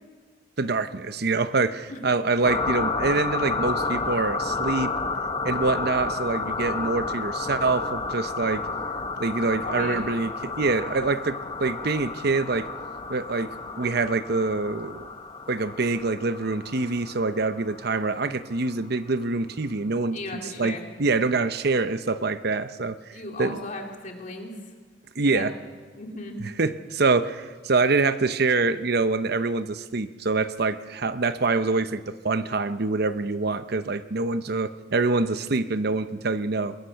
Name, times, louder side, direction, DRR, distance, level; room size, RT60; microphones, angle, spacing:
voice 1, 0.6-4.9 5.4-8.6 9.2-12.7 13.1-13.5 13.8-15.1 15.5-20.2 20.6-23.0 23.4-23.6 25.2-25.5 26.6-36.8, right 3 dB, 60° right, 12 dB, 0.8 m, -25 dB
sound 1, 2.4-18.7, left 3 dB, 25° left, 1.1 m, -31 dB
voice 2, 9.6-10.0 20.1-20.9 23.1-24.6 25.2-25.5 25.9-26.4, left 2 dB, 45° left, 2 dB, 2.3 m, -36 dB
21.5 x 21.0 x 5.8 m, 1.5 s
head